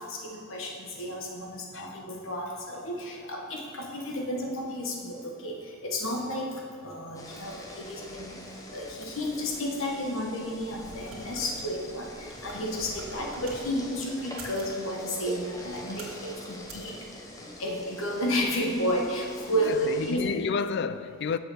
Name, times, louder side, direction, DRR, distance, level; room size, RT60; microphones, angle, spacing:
voice 1, 0.0-8.4 8.7-20.2, equal, 70° left, 1.4 m, -32 dB
sound 1, 7.1-20.1, equal, 15° left, 1.0 m, -44 dB
sound 2, 10.5-13.6 14.2-14.8 15.5-16.2 16.6-16.9, right 2 dB, 70° right, 1.8 m, -47 dB
voice 2, 19.5-21.4, left 5 dB, 55° left, 0.4 m, -31 dB
7.1 x 5.9 x 6.7 m
head